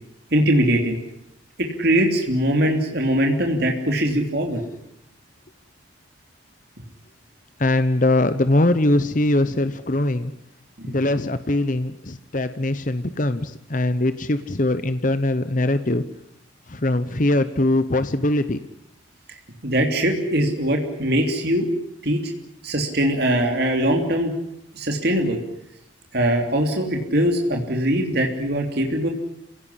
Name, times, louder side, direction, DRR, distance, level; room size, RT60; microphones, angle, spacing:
voice 1, 0.3-1.0 1.6-4.6 10.8-11.0 19.6-21.7 22.0-22.3 22.6-24.3 24.7-25.4 26.1-29.1, right 1 dB, 55° right, 2 dB, 3.2 m, -21 dB
voice 2, 7.6-10.3 10.8-16.0 16.7-18.6, left 1 dB, 40° left, 11 dB, 0.9 m, -21 dB
26.5 x 17.5 x 10.0 m, 0.80 s
head